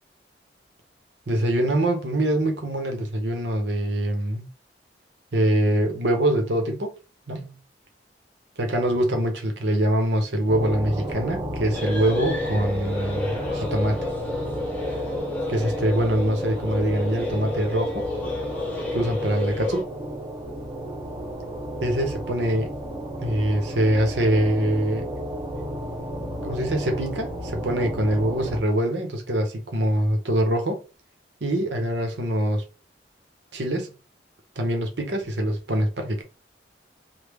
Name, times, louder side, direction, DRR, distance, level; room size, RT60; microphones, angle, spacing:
voice 1, 1.3-4.5 5.3-6.9 7.3-7.5 8.6-14.0 15.5-18.1 18.9-19.9 21.8-22.7 23.2-25.0 26.4-30.8 31.4-32.6 33.5-33.9 34.6-36.2, right 1 dB, 85° right, 0.9 m, -24 dB
sound 1, 10.5-28.6, equal, 20° right, 0.7 m, -33 dB
sound 2, 11.7-19.8, left 2 dB, 10° left, 0.8 m, -31 dB
3.3 x 2.2 x 3.5 m
head